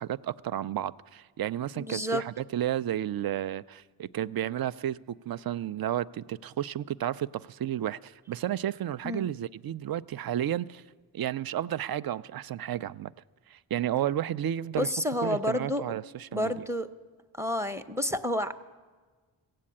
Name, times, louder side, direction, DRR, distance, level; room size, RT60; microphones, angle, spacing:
voice 1, 0.0-10.8 11.1-13.1 13.5-14.9 15.2-16.7, right 11 dB, 50° right, 0.5 m, -32 dB
voice 2, 1.7-2.3 9.0-9.3 14.8-15.8 16.3-16.9 17.4-18.5, left 1 dB, 5° right, 0.7 m, -30 dB
15.5 x 7.7 x 8.6 m
cardioid pair, 45°, 49 cm